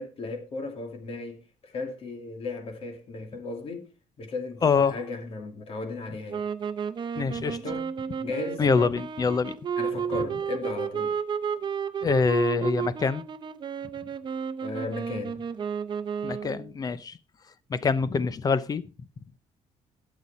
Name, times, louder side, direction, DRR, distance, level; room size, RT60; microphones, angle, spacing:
voice 1, 0.0-3.9 4.2-6.4 7.4-7.9 8.2-8.6 9.8-11.2 14.6-15.4, left 3 dB, 50° left, 2.4 m, -35 dB
voice 2, 4.6-5.0 7.2-7.6 8.6-9.6 12.0-13.2 16.2-17.2 17.7-18.8, left 5 dB, 30° left, 0.7 m, -25 dB
sound 1, 6.3-16.7, right 7 dB, 40° right, 0.7 m, -32 dB
12.5 x 8.3 x 4.2 m
cardioid pair, 150°, 12 cm